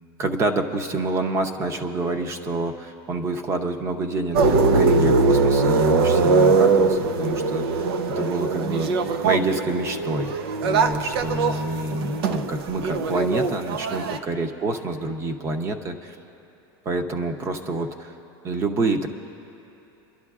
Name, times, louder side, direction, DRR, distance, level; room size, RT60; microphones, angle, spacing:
voice 1, 0.2-7.9 8.2-8.9 9.2-10.3 10.6-16.2 16.8-18.1 18.4-19.1, right 2 dB, 20° right, 6 dB, 0.7 m, -27 dB
sound 1, 4.3-14.2, right 3 dB, 85° right, 0.7 m, -21 dB
28.5 x 12.0 x 2.4 m, 2.9 s
supercardioid pair, 165°, 13 cm